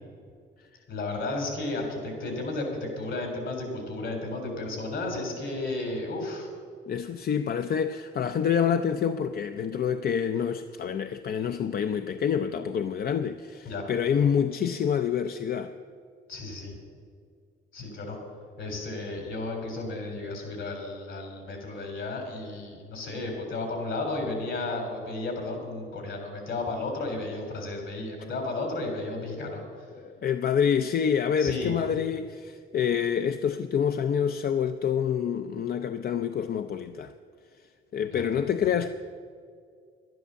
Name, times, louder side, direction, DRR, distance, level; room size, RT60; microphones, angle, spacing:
voice 1, 0.9-6.5 13.7-13.8 16.3-16.8 17.7-18.2 18.6-29.6 31.4-31.7 38.1-38.4, left 2 dB, 70° left, 3.7 m, -33 dB
voice 2, 6.9-15.7 29.4-29.6 30.0-37.1 37.9-38.9, left 8 dB, 50° left, 0.5 m, -27 dB
11.0 x 11.0 x 6.9 m
cardioid pair, 90°, 20 cm